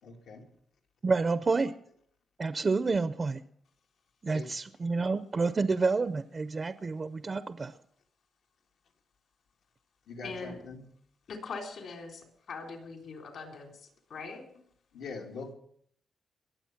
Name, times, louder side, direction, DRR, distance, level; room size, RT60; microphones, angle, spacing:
voice 1, 0.0-0.5 4.3-4.5 10.1-10.8 14.9-15.5, left 3 dB, 85° left, 2 dB, 2.2 m, -43 dB
voice 2, 1.0-1.7 2.4-3.4 4.2-7.7, right 4 dB, 30° right, 12 dB, 0.5 m, -29 dB
voice 3, 10.2-10.6 11.3-13.7 14.1-14.6, left 4 dB, 70° left, 3 dB, 3.8 m, -41 dB
22.0 x 7.9 x 5.8 m, 0.66 s
cardioid pair, 125°, 0 cm